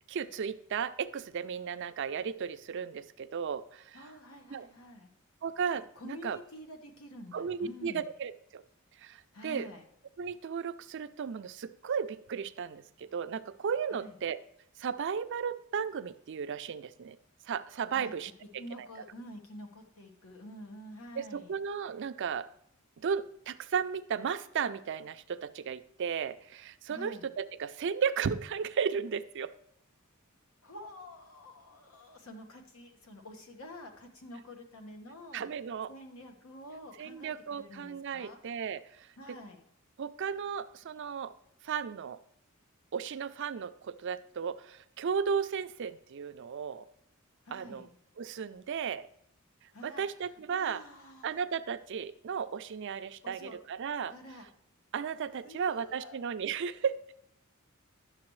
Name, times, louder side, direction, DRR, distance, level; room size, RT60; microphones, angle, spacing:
voice 1, 0.1-4.0 4.5-4.7 5.4-6.4 7.3-8.6 9.0-9.7 10.2-14.4 14.8-17.2 17.5-18.3 18.8-18.9 21.2-22.5 23.0-29.5 35.3-35.9 37.0-39.4 40.0-41.3 41.6-42.2 42.9-46.9 47.5-47.9 48.2-49.1 49.8-50.8 51.2-54.1 54.9-57.0, right 6 dB, 60° right, 12 dB, 0.4 m, -35 dB
voice 2, 3.9-5.1 5.9-8.1 9.3-9.8 13.9-14.2 17.9-18.1 18.4-21.6 26.9-27.3 30.6-35.4 35.9-38.4 39.2-39.6 47.4-47.9 49.7-51.3 53.2-53.6 54.1-54.5 55.4-56.2 56.5-56.6, left 1 dB, 80° left, 4 dB, 1.3 m, -48 dB
10.5 x 6.7 x 3.1 m, 0.73 s
head